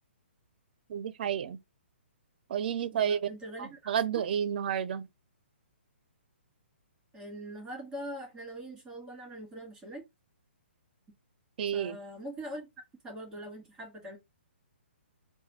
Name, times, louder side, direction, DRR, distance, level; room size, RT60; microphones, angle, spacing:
voice 1, 0.9-1.6 2.5-3.3 3.6-5.1 11.6-12.0, right 8 dB, 50° right, 0.6 m, -31 dB
voice 2, 2.9-4.3 7.1-10.0 11.7-12.7 13.0-14.2, right 1 dB, 10° right, 2.5 m, -43 dB
4.1 x 2.3 x 4.1 m
hypercardioid pair, 135°, 6 cm